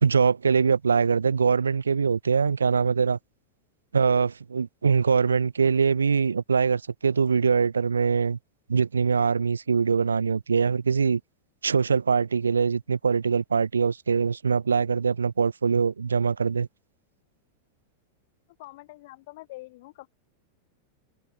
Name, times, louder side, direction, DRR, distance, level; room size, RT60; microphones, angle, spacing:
voice 1, 0.0-3.2 3.9-8.4 8.7-11.2 11.6-16.7, right 5 dB, 75° right, 0.3 m, -23 dB
voice 2, 18.6-20.1, left 20 dB, 50° left, 2.8 m, -45 dB
figure-of-eight pair, 90°, 0 cm